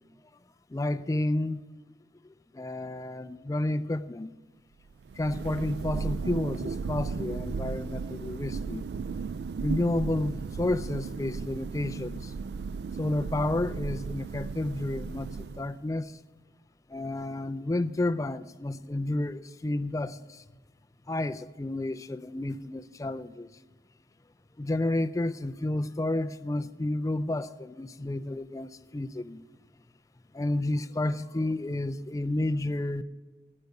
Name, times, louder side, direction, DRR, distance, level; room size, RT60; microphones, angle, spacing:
voice 1, 0.7-1.6 2.5-4.3 5.2-8.8 9.6-12.3 13.0-16.1 16.9-20.4 21.1-23.5 24.6-29.4 30.3-33.0, left 1 dB, 20° left, 0.3 m, -31 dB
Thunder, 4.9-15.9, right 5 dB, 65° right, 0.3 m, -35 dB
11.5 x 6.6 x 9.4 m
head